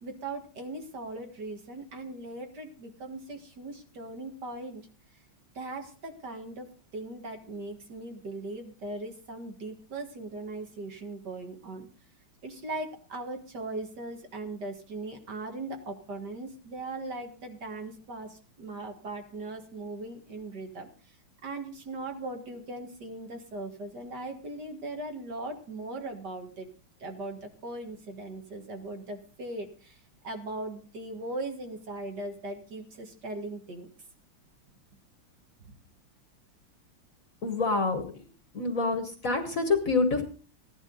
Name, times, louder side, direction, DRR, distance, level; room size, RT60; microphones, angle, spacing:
voice 1, 0.0-4.8 5.5-6.7 6.9-11.9 12.4-21.2 21.4-26.7 27.0-33.9 35.6-35.7, right 2 dB, 50° right, 4 dB, 2.2 m, -39 dB
voice 2, 37.4-38.0 38.5-40.2, left 3 dB, 45° left, 6 dB, 1.5 m, -26 dB
16.5 x 11.0 x 3.9 m, 0.39 s
omnidirectional pair, 2.4 m